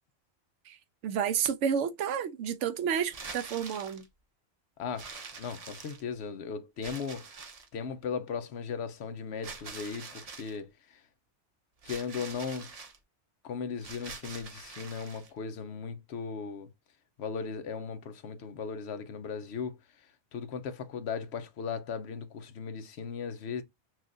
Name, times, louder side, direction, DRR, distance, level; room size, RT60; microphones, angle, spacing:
voice 1, 1.0-4.0, right 8 dB, 85° right, 1.0 m, -30 dB
sound 1, 3.0-4.1 5.0-6.2 6.8-7.8 9.4-10.6 11.8-13.0 13.8-15.3, right 4 dB, 40° right, 0.6 m, -45 dB
voice 2, 4.8-7.3 7.7-11.0 11.8-12.7 13.4-16.7 17.2-23.6, left 6 dB, 65° left, 0.9 m, -37 dB
5.9 x 2.4 x 2.5 m
omnidirectional pair, 1.2 m